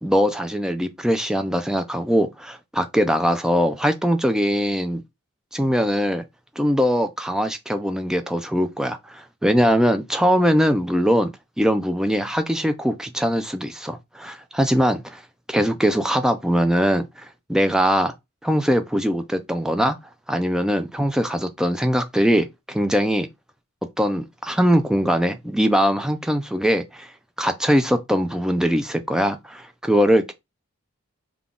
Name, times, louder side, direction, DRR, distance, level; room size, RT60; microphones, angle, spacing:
voice 1, 0.0-5.0 5.5-6.2 6.6-11.3 11.6-15.2 15.5-18.1 18.4-20.0 20.3-23.3 24.0-27.1 27.4-30.3, equal, 5° right, 0.3 m, -21 dB
3.8 x 2.4 x 3.6 m
head